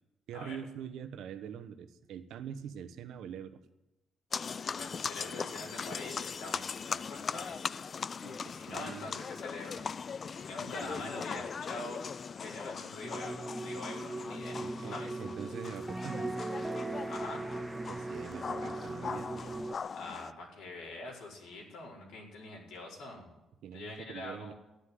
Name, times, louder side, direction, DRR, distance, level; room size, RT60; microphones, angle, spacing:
voice 1, 0.3-3.6 8.2-9.1 10.6-11.4 14.6-16.5 17.9-19.4 23.6-24.5, right 8 dB, 80° right, 9 dB, 1.1 m, -44 dB
sound 1, 4.3-20.3, left 6 dB, 45° left, 0.4 m, -40 dB
voice 2, 4.6-7.8 8.4-9.8 10.3-12.1 12.4-14.6 14.9-15.2 17.1-17.5 19.9-23.3 23.7-24.5, left 2 dB, 85° left, -2 dB, 4.8 m, -44 dB
sound 2, 13.0-19.8, right 2 dB, 15° right, 0.6 m, -39 dB
13.0 x 10.0 x 9.6 m, 0.95 s
cardioid pair, 90°, 0 cm